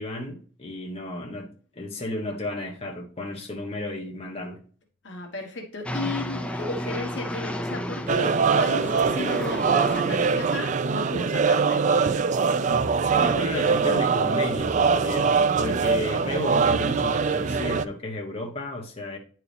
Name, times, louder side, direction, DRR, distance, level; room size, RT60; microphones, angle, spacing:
voice 1, 0.0-1.5 1.7-4.6 13.2-19.2, left 1 dB, 30° left, 1.2 m, -33 dB
voice 2, 5.0-12.1, left 2 dB, 70° left, 1.2 m, -34 dB
sound 1, 5.9-10.9, equal, 5° left, 0.6 m, -32 dB
sound 2, 8.1-17.8, right 5 dB, 40° right, 0.4 m, -23 dB
9.5 x 4.7 x 3.4 m
head